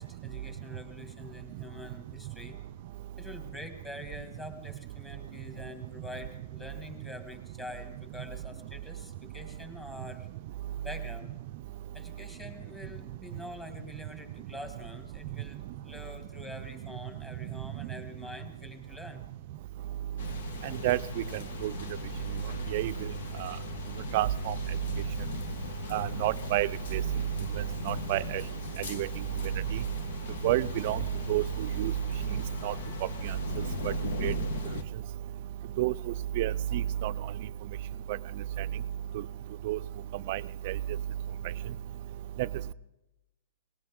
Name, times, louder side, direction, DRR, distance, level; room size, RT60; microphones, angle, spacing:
voice 1, 0.0-2.6 3.2-10.3 10.8-11.3 11.9-19.2, left 1 dB, 10° left, 6 dB, 2.0 m, -45 dB
sound 1, 20.2-34.8, left 5 dB, 70° left, 1.3 m, -39 dB
voice 2, 24.1-24.5 25.9-27.0 27.9-28.4 28.9-29.1 30.4-31.0 31.3-31.4 31.8-31.9 32.6-32.7 34.2-34.3 35.8-35.9 36.4-36.5 37.0-37.1 39.7-39.8 40.3-40.4, right 15 dB, 50° right, 14 dB, 0.5 m, -28 dB
18.5 x 18.5 x 3.7 m, 0.94 s
hypercardioid pair, 140°, 0 cm